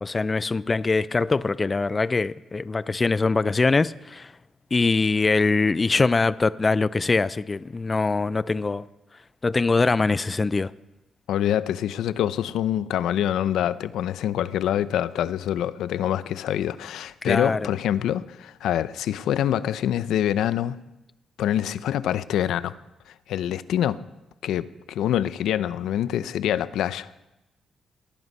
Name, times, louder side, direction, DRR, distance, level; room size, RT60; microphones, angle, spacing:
voice 1, 0.0-4.3 4.7-8.8 9.4-10.7 17.2-17.6, left 3 dB, 25° left, 0.5 m, -23 dB
voice 2, 11.3-20.8 21.4-22.7 23.3-24.0 24.4-27.1, left 11 dB, 85° left, 0.6 m, -25 dB
19.0 x 11.0 x 5.5 m
cardioid pair, 105°, 0 cm